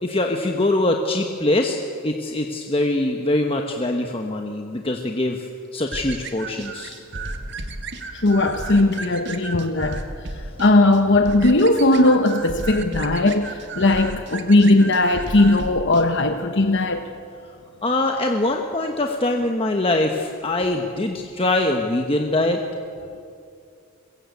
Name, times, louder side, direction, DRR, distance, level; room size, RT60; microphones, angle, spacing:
voice 1, 0.0-1.8 2.0-6.9 17.8-22.6, left 2 dB, 25° left, 3 dB, 1.2 m, -23 dB
sound 1, 5.9-16.1, right 2 dB, 50° right, 1.8 m, -34 dB
voice 2, 8.1-10.0 10.6-17.1, left 2 dB, 55° left, 6 dB, 1.0 m, -18 dB
23.0 x 22.0 x 8.4 m, 2.5 s
head